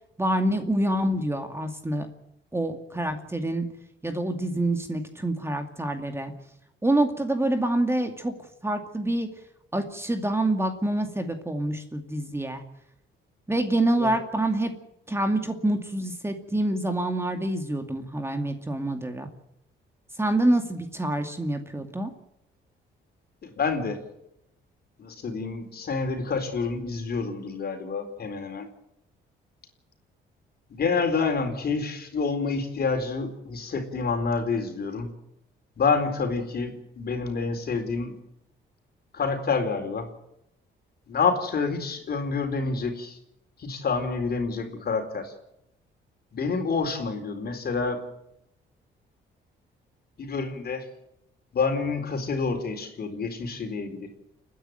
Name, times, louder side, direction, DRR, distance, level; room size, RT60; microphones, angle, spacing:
voice 1, 0.2-2.1 2.5-3.7 4.0-6.3 6.8-8.3 8.6-9.3 9.7-12.6 13.5-14.7 15.1-19.3 20.2-22.1, right 1 dB, 10° right, 6 dB, 2.4 m, -26 dB
voice 2, 23.4-24.0 25.0-28.7 30.7-35.1 35.8-38.2 39.1-40.1 41.1-43.2 43.6-45.3 46.3-48.0 50.2-50.9 51.5-54.1, left 4 dB, 50° left, 5 dB, 4.3 m, -28 dB
29.5 x 10.0 x 9.1 m, 0.80 s
cardioid pair, 90°, 20 cm